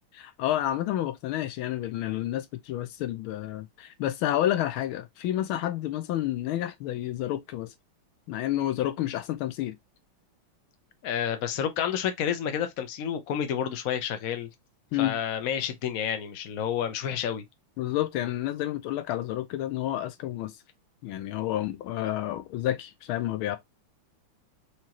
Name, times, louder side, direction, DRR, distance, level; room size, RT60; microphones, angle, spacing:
voice 1, 0.2-7.7 8.3-9.8 14.9-15.2 17.8-20.6 21.0-23.6, left 13 dB, 80° left, 1.3 m, -30 dB
voice 2, 11.0-14.5 15.0-17.4, left 9 dB, 60° left, 0.9 m, -30 dB
5.0 x 3.0 x 2.8 m
omnidirectional pair, 2.4 m